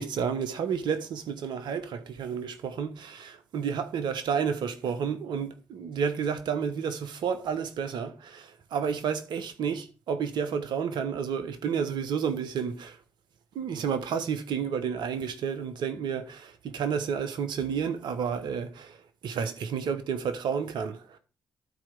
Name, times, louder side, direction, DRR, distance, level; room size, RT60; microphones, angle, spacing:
voice 1, 0.0-13.0 13.5-19.0 19.2-21.2, right 7 dB, 65° right, 1.2 m, -31 dB
12.0 x 4.4 x 5.1 m
hypercardioid pair, 45°, 8 cm